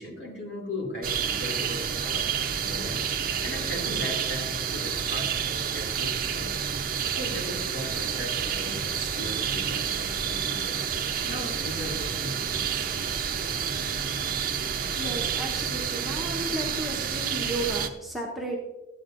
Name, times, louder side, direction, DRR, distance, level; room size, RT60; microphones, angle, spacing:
voice 1, 0.0-2.3 2.6-6.5 6.8-12.7, left 1 dB, 60° left, -1 dB, 2.5 m, -38 dB
sound 1, 1.0-17.9, right 7 dB, 45° right, 0.5 m, -29 dB
voice 2, 15.0-18.6, right 1 dB, ahead, -2 dB, 0.9 m, -33 dB
11.5 x 8.3 x 2.5 m, 1.0 s
head